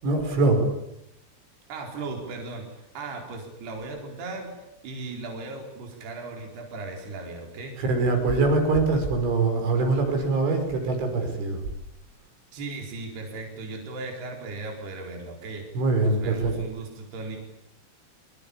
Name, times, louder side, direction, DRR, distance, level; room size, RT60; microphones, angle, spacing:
voice 1, 0.0-0.6 7.8-11.6 15.7-16.5, right 3 dB, 75° right, 5 dB, 7.8 m, -23 dB
voice 2, 1.7-4.5 4.8-7.8 12.5-15.6 16.0-17.4, right 3 dB, 55° right, 1 dB, 6.4 m, -37 dB
25.5 x 25.0 x 8.7 m, 0.82 s
omnidirectional pair, 5.6 m